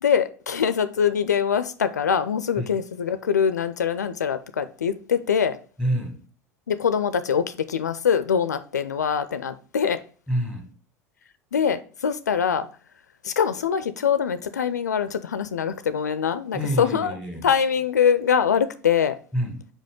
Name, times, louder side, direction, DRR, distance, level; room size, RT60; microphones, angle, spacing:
voice 1, 0.0-5.6 6.7-10.0 11.5-12.7 13.2-17.1 17.4-19.2, left 7 dB, 75° left, 0.4 m, -23 dB
voice 2, 5.8-6.2 10.3-10.7 16.5-17.5 19.3-19.7, equal, 10° right, 1.9 m, -27 dB
5.3 x 4.9 x 3.6 m
figure-of-eight pair, 75°, 9 cm